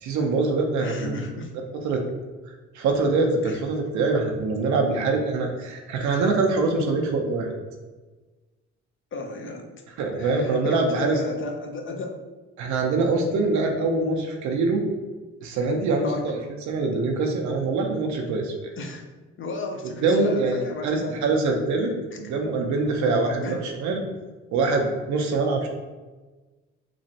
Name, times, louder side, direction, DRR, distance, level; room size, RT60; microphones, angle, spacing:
voice 1, 0.0-1.1 1.7-2.0 2.7-7.5 10.0-11.2 12.6-14.8 15.4-16.4 16.7-18.7 20.0-24.0 24.5-25.7, right 3 dB, 70° right, 2 dB, 0.6 m, -24 dB
voice 2, 0.8-1.5 3.4-3.6 9.1-9.7 10.1-12.1 16.0-16.2 18.8-19.0 19.4-21.1 22.2-22.4 23.4-23.6, left 2 dB, 40° left, 3 dB, 0.6 m, -34 dB
3.0 x 2.4 x 2.7 m, 1.2 s
supercardioid pair, 70°, 30 cm